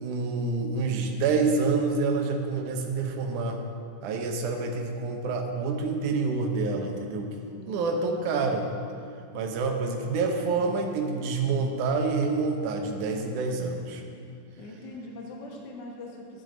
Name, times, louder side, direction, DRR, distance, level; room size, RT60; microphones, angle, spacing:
voice 1, 0.0-3.6 4.0-7.3 7.7-8.7 9.3-14.0, right 4 dB, 70° right, 2 dB, 2.2 m, -27 dB
voice 2, 7.5-8.6 14.6-16.4, left 2 dB, 70° left, -2 dB, 1.0 m, -43 dB
12.5 x 9.6 x 3.9 m, 2.4 s
omnidirectional pair, 4.2 m